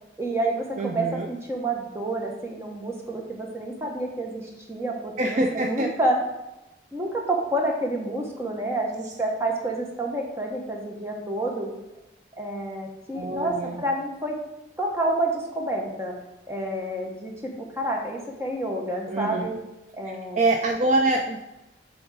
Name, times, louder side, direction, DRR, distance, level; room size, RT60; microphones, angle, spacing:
voice 1, 0.2-6.2 6.9-11.7 12.4-14.4 14.8-16.1 16.5-17.3 17.8-19.5 19.9-20.4, right 1 dB, 15° right, 0 dB, 1.0 m, -29 dB
voice 2, 0.8-1.3 5.2-5.9 13.1-13.8 19.1-19.5 20.4-21.4, right 2 dB, 40° right, 3 dB, 0.4 m, -25 dB
7.8 x 3.5 x 4.8 m, 0.95 s
head